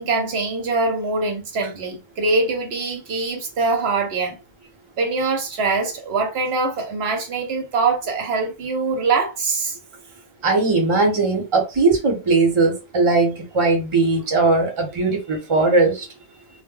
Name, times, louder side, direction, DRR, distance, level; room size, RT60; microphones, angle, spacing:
voice 1, 0.0-4.4 5.0-9.8, right 3 dB, 75° right, 0.9 m, -23 dB
voice 2, 10.4-16.0, right 3 dB, 30° right, 0.8 m, -19 dB
2.1 x 2.1 x 3.6 m
omnidirectional pair, 1.1 m